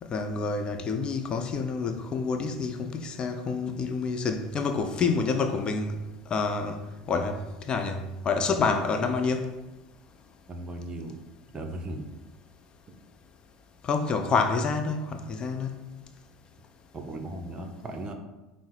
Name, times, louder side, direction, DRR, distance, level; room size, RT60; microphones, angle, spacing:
voice 1, 0.0-6.0 6.3-6.8 7.1-9.5 13.8-15.7, left 4 dB, 35° left, 0.4 m, -28 dB
voice 2, 10.5-11.1 11.5-12.1 16.9-18.1, right 1 dB, 30° right, 0.7 m, -37 dB
5.5 x 2.0 x 4.6 m
hypercardioid pair, 75°, 3 cm